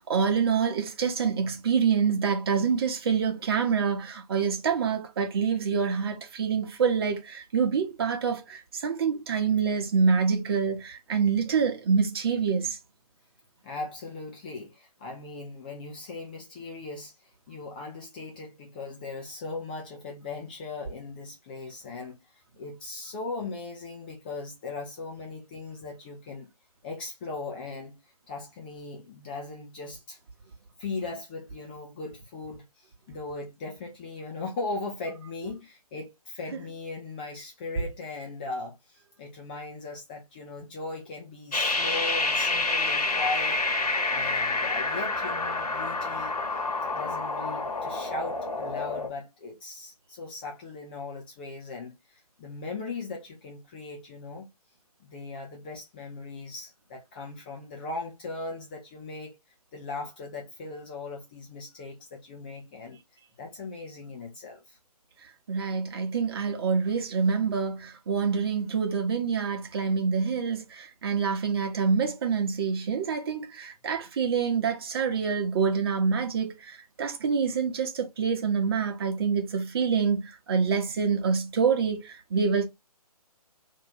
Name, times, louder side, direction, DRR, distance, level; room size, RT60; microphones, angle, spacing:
voice 1, 0.0-12.8 65.5-82.7, right 6 dB, 40° right, 1.0 m, -26 dB
voice 2, 13.6-26.5 26.8-28.0 28.3-30.2 30.8-46.3 46.9-54.5 55.0-59.4 59.7-63.0 63.4-64.8, left 3 dB, 15° left, 0.4 m, -38 dB
sound 1, 41.5-49.1, left 3 dB, 70° left, 1.4 m, -28 dB
2.9 x 2.6 x 4.0 m
figure-of-eight pair, 145°, 20 cm